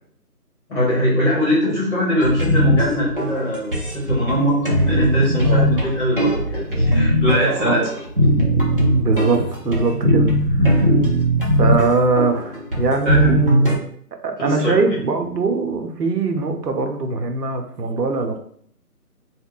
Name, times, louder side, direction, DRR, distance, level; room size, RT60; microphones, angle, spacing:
voice 1, 0.7-4.6 4.8-7.8 13.0-13.3 14.4-14.8, equal, 45° left, -5 dB, 1.0 m, -21 dB
sound 1, 2.2-13.8, equal, 35° right, 0.6 m, -19 dB
voice 2, 7.3-7.9 9.0-10.9 11.6-13.8 14.2-18.4, right 4 dB, 80° right, 5 dB, 0.7 m, -22 dB
2.3 x 2.1 x 3.7 m, 0.62 s
figure-of-eight pair, 160°, 47 cm